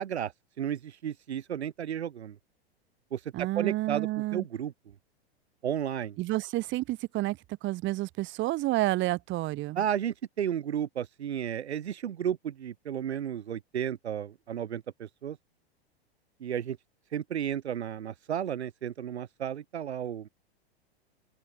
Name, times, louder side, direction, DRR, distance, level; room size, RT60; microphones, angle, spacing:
voice 1, 0.0-2.4 3.1-4.7 5.6-6.2 9.8-15.4 16.4-16.8 17.1-20.3, right 9 dB, 85° right, 0.6 m, -33 dB
voice 2, 3.3-4.4 6.2-9.8, right 18 dB, 35° right, 2.2 m, -30 dB
open air
hypercardioid pair, 100°, 32 cm